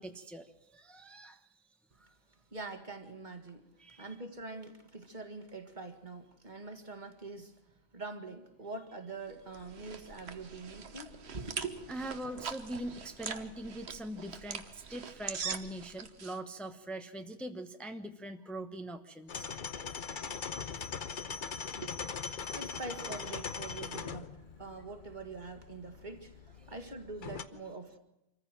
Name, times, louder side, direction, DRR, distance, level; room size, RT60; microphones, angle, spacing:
voice 1, 0.0-1.4 3.8-4.1 11.9-19.5 21.3-21.7, right 1 dB, ahead, 1.0 m, -42 dB
voice 2, 2.5-3.6 4.0-7.6 7.9-11.9 21.8-21.9 22.4-24.3 24.6-28.0, right 3 dB, 45° right, 2.0 m, -44 dB
sound 1, 9.3-16.4, right 5 dB, 90° right, 1.5 m, -43 dB
sound 2, 19.3-27.4, left 6 dB, 50° left, 1.0 m, -41 dB
25.5 x 15.0 x 7.6 m
omnidirectional pair, 1.1 m